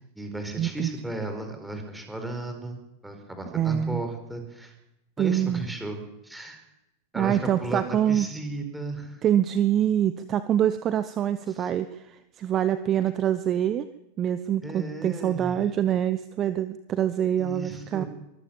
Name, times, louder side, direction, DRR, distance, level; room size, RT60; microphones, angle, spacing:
voice 1, 0.0-4.7 5.2-6.0 6.2-6.6 7.1-9.2 11.5-11.7 14.6-15.7 17.4-18.1, right 1 dB, 5° right, 5 dB, 4.7 m, -35 dB
voice 2, 0.6-0.9 3.5-4.0 5.2-5.6 7.1-8.3 9.2-13.9 14.2-18.0, right 10 dB, 30° right, 13 dB, 0.9 m, -25 dB
24.0 x 14.5 x 7.6 m, 0.90 s
figure-of-eight pair, 90°, 0 cm